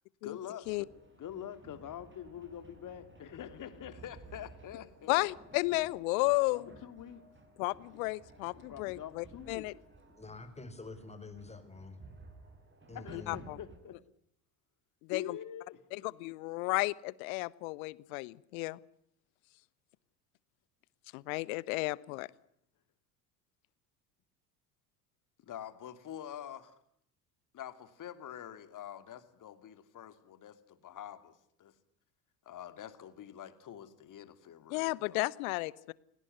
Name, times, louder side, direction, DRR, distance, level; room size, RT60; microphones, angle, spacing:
voice 1, 0.2-0.9 1.2-5.3 6.5-7.2 8.5-9.7 12.9-14.0 15.1-16.3 25.4-26.8 27.5-31.7 32.4-35.2, left 10 dB, 40° left, 11 dB, 3.0 m, -46 dB
sound 1, 0.6-13.8, right 2 dB, 20° right, 6.8 m, -56 dB
voice 2, 5.1-6.7 7.6-9.7 13.1-13.6 15.0-15.4 15.9-18.8 21.1-22.3 34.7-35.9, left 23 dB, 55° left, 22 dB, 1.1 m, -33 dB
voice 3, 10.2-12.0 12.9-13.4, left 3 dB, 15° left, 10 dB, 4.8 m, -47 dB
29.0 x 18.5 x 9.5 m, 0.72 s
figure-of-eight pair, 65°, 50 cm